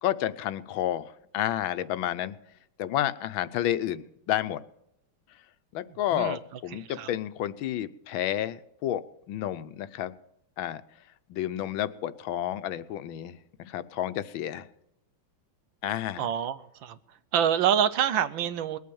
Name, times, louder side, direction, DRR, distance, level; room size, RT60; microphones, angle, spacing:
voice 1, 0.0-2.4 2.8-4.6 5.7-10.2 10.6-10.8 11.3-14.7 15.8-16.2, left 12 dB, 80° left, 1.5 m, -30 dB
voice 2, 6.7-7.1 16.2-17.0 17.3-18.8, right 9 dB, 75° right, 1.5 m, -26 dB
20.0 x 8.5 x 7.0 m
omnidirectional pair, 2.2 m